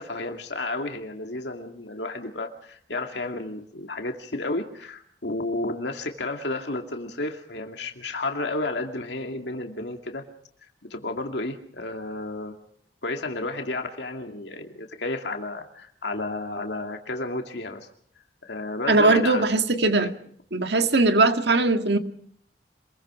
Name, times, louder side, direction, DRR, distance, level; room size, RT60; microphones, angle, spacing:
voice 1, 0.0-10.2 10.9-12.6 13.0-17.9 18.4-19.5 20.0-20.1, left 2 dB, 70° left, 4 dB, 2.3 m, -32 dB
voice 2, 18.9-20.2 20.5-22.0, right 3 dB, 70° right, 7 dB, 1.8 m, -20 dB
27.0 x 22.0 x 4.9 m, 0.63 s
head